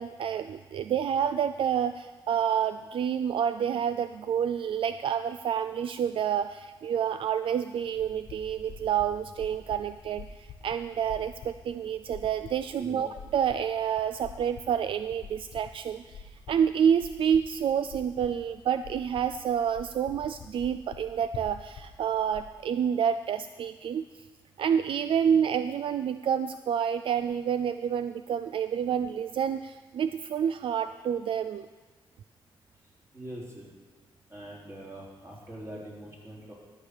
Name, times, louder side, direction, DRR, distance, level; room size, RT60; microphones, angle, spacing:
voice 1, 0.0-24.0 24.6-31.7, right 8 dB, 65° right, 11 dB, 0.3 m, -28 dB
sound 1, 7.8-22.5, left 5 dB, 90° left, 0.8 m, -47 dB
voice 2, 33.1-33.7 34.3-36.5, right 1 dB, 30° right, -4 dB, 3.6 m, -43 dB
13.0 x 6.9 x 6.4 m, 1.4 s
cardioid pair, 100°, 9 cm